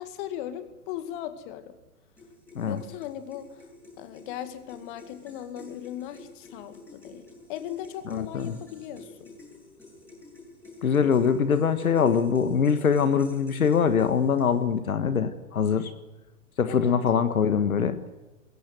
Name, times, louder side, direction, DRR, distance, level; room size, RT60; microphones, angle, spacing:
voice 1, 0.0-1.7 2.7-3.6 4.0-9.3 16.7-17.0, left 11 dB, 35° left, 10 dB, 2.1 m, -38 dB
sound 1, 2.2-14.8, left 2 dB, 5° left, 7.9 m, -49 dB
voice 2, 8.1-8.6 10.8-15.9 16.6-18.0, left 6 dB, 70° left, 11 dB, 1.7 m, -23 dB
21.5 x 16.5 x 9.3 m, 1.1 s
figure-of-eight pair, 125°, 44 cm